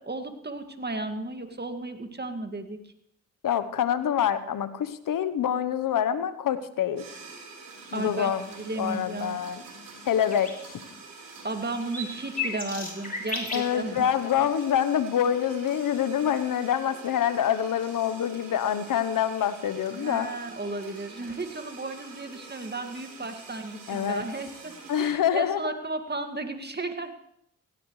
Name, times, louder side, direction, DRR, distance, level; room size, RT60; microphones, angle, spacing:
voice 1, 0.0-2.8 7.9-9.4 11.4-14.1 19.9-27.2, right 2 dB, 30° right, 6 dB, 2.2 m, -34 dB
voice 2, 3.4-7.1 7.9-8.4 8.8-9.6 10.0-10.8 13.5-20.3 23.9-24.2 24.9-25.6, left 9 dB, 75° left, 13 dB, 1.1 m, -26 dB
sound 1, 7.0-25.1, right 4 dB, 85° right, 4.4 m, -46 dB
sound 2, 10.3-10.6 11.0-11.1 11.6-13.7 15.9-16.0, left 3 dB, 25° left, 4.0 m, -34 dB
17.0 x 16.5 x 3.3 m, 0.72 s
supercardioid pair, 45°, 33 cm